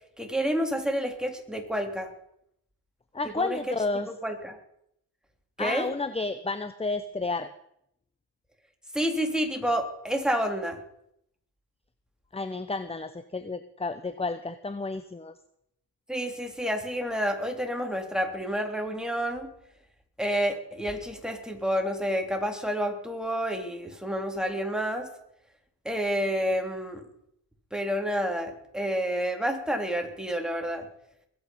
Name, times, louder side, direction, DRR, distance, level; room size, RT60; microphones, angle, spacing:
voice 1, 0.2-2.1 3.2-3.6 4.1-4.6 5.6-5.9 8.9-10.8 16.1-19.5 20.2-25.1 25.9-27.1 27.7-30.9, equal, ahead, 3 dB, 3.4 m, -29 dB
voice 2, 3.1-4.1 5.6-7.5 12.3-15.4, left 3 dB, 15° left, 12 dB, 0.9 m, -31 dB
21.5 x 8.9 x 5.5 m, 0.75 s
supercardioid pair, 55°, 41 cm